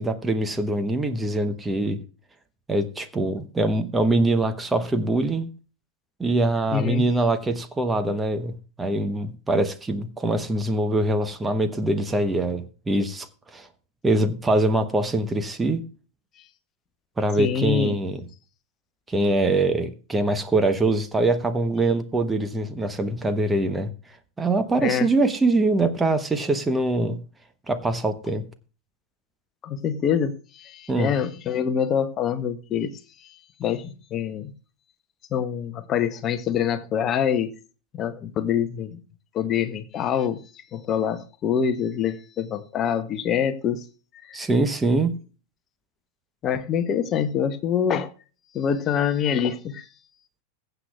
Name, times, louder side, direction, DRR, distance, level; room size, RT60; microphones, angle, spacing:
voice 1, 0.0-2.0 2.7-5.5 6.2-13.7 14.0-15.8 17.2-18.2 19.1-23.9 24.4-27.2 27.7-28.4 30.9-31.1 44.3-45.1, right 2 dB, 10° right, 1.0 m, -23 dB
voice 2, 6.7-7.0 17.4-18.0 24.8-25.1 29.6-32.9 33.6-34.5 35.3-37.5 37.9-39.0 39.3-40.4 40.7-43.8 44.3-44.5 46.4-48.1 48.5-49.9, left 8 dB, 30° left, 0.9 m, -25 dB
21.5 x 7.9 x 2.4 m
figure-of-eight pair, 90°, 0 cm